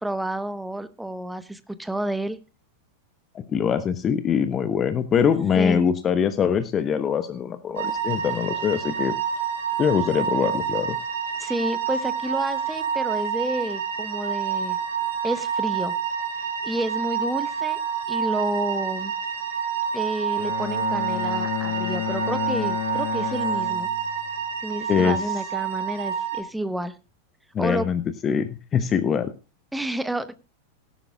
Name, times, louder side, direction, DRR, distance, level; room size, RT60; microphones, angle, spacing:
voice 1, 0.0-2.4 5.5-5.9 11.4-14.8 15.2-15.9 16.6-17.8 18.1-19.1 19.9-23.9 24.6-26.9 27.6-27.9 29.7-30.3, right 1 dB, 5° right, 13 dB, 1.1 m, -30 dB
voice 2, 3.3-9.1 9.8-11.0 24.9-25.2 27.5-29.3, left 7 dB, 25° left, 12 dB, 0.9 m, -23 dB
sound 1, 7.8-26.4, right 8 dB, 60° right, 3.9 m, -28 dB
Bowed string instrument, 20.4-24.5, left 13 dB, 55° left, 0.8 m, -31 dB
18.0 x 11.0 x 2.3 m, 0.31 s
figure-of-eight pair, 90°, 0 cm